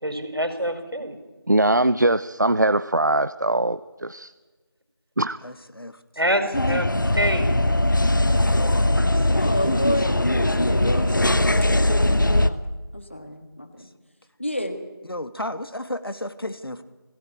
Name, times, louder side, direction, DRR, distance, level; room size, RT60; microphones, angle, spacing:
voice 1, 0.0-1.2 6.2-6.9 7.1-7.6, equal, 80° right, 7 dB, 4.7 m, -25 dB
voice 2, 1.5-4.3 5.2-5.4, right 1 dB, 50° right, 13 dB, 0.6 m, -21 dB
voice 3, 5.4-6.0 6.3-7.1 9.0-9.7 13.8-13.9 15.0-16.8, left 1 dB, 75° left, 11 dB, 1.8 m, -35 dB
sound 1, 6.5-12.5, left 1 dB, 55° left, 1.1 m, -20 dB
voice 4, 9.4-12.6 12.9-13.9 14.4-14.8, equal, 30° left, 7 dB, 1.7 m, -30 dB
20.0 x 16.0 x 8.7 m, 1.3 s
figure-of-eight pair, 180°, 12 cm